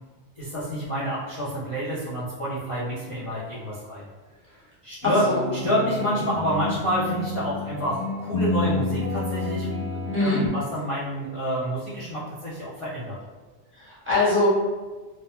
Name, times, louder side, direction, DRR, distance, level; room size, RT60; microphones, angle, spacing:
voice 1, 0.4-4.1 4.5-5.2 5.5-13.2, equal, 40° left, -11 dB, 0.5 m, -28 dB
sound 1, 5.0-10.5, left 2 dB, 15° left, 1.1 m, -29 dB
voice 2, 5.0-5.4 10.1-10.4 13.7-14.5, left 2 dB, 15° right, -11 dB, 0.6 m, -23 dB
2.2 x 2.1 x 2.9 m, 1.3 s
omnidirectional pair, 1.1 m